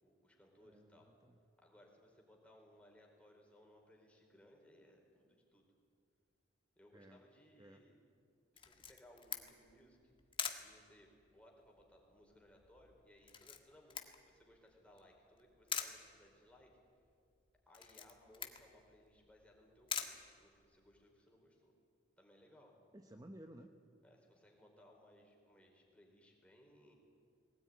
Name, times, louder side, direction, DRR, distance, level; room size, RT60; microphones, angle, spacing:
voice 1, 0.0-1.1 1.6-5.7 6.8-8.0 8.5-10.1 10.6-16.7 17.7-21.7 22.2-22.7 24.0-26.9, equal, 5° left, 0 dB, 4.2 m, -65 dB
voice 2, 0.6-1.4 6.9-7.2 7.6-7.8 22.9-23.7, right 1 dB, 20° right, 6 dB, 0.9 m, -56 dB
Camera, 8.6-21.0, left 7 dB, 30° left, 1.6 m, -47 dB
20.5 x 18.0 x 9.5 m, 2.3 s
head